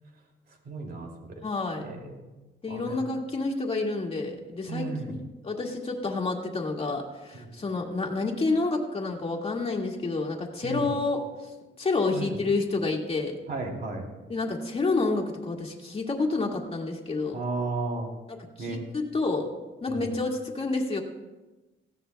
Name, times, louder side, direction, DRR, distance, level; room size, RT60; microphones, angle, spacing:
voice 1, 0.6-1.4 1.8-2.2 2.7-3.0 4.7-5.1 7.3-7.5 10.6-10.9 12.1-12.3 13.5-14.1 17.3-18.1 18.6-18.8 19.9-20.1, right 3 dB, 55° right, 1 dB, 2.8 m, -34 dB
voice 2, 1.4-1.8 2.6-5.2 5.4-11.3 11.8-13.4 14.3-17.4 18.3-19.5 19.8-21.0, left 3 dB, 30° left, 0 dB, 2.0 m, -29 dB
18.5 x 15.5 x 2.3 m, 1.1 s
cardioid pair, 135°, 20 cm